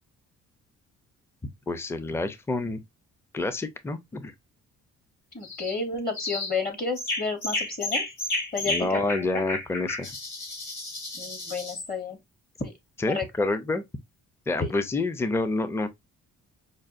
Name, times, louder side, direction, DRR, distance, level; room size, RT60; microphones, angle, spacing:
voice 1, 1.7-2.8 3.3-4.3 8.7-10.1 13.0-13.8 14.5-15.9, left 2 dB, 10° left, 0.4 m, -28 dB
voice 2, 5.3-8.0 8.5-9.4 11.1-12.2 12.6-12.7 13.1-13.3 14.6-14.7, left 4 dB, 30° left, 1.0 m, -31 dB
sound 1, 5.4-5.8 6.1-6.6 7.0-11.9, left 2 dB, 75° left, 2.9 m, -32 dB
5.2 x 2.3 x 2.5 m
cardioid pair, 90°, 30 cm